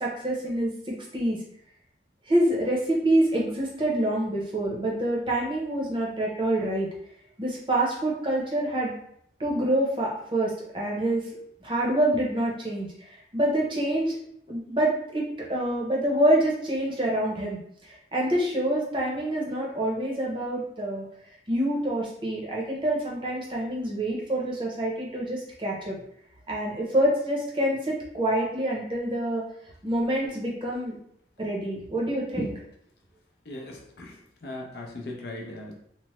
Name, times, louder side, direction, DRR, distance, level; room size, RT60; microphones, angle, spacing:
voice 1, 0.0-1.4 2.3-6.9 7.4-8.9 9.4-11.3 11.6-14.2 14.5-17.6 18.1-21.1 21.5-26.0 26.5-29.4 29.8-31.0 31.4-32.5, right 1 dB, 25° right, -3 dB, 0.6 m, -26 dB
voice 2, 33.5-34.1 34.4-35.8, left 1 dB, 65° left, 0 dB, 0.5 m, -38 dB
3.1 x 2.0 x 3.0 m, 0.70 s
head